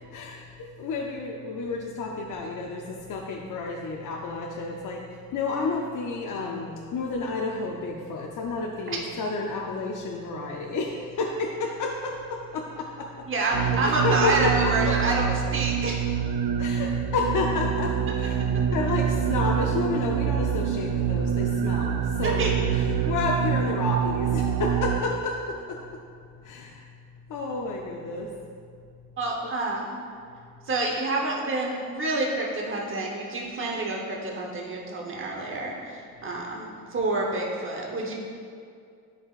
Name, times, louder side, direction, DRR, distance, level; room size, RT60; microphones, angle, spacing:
voice 1, 0.1-14.7 16.6-18.4 18.7-22.5 22.7-25.8 26.4-26.8 27.3-28.3, left 3 dB, 65° left, 0 dB, 0.6 m, -30 dB
voice 2, 13.3-16.0 22.2-22.5 29.2-30.0 30.6-38.1, right 2 dB, 35° right, -1 dB, 0.9 m, -28 dB
sound 1, 13.5-25.0, right 8 dB, 85° right, 0.5 m, -26 dB
11.0 x 5.0 x 2.4 m, 2.3 s
cardioid pair, 115°, 34 cm